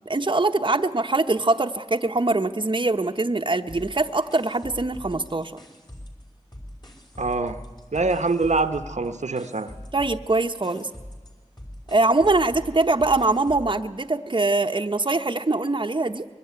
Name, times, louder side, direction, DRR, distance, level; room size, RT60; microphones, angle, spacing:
voice 1, 0.1-5.6 9.9-10.9 11.9-16.3, right 2 dB, 40° right, 5 dB, 1.0 m, -23 dB
sound 1, 3.7-6.2 6.5-13.8, equal, 35° left, 5.1 m, -42 dB
voice 2, 7.2-7.6 7.9-9.7, right 3 dB, 75° right, 9 dB, 1.0 m, -24 dB
24.0 x 23.0 x 9.5 m, 1.5 s
wide cardioid pair, 60°, 12 cm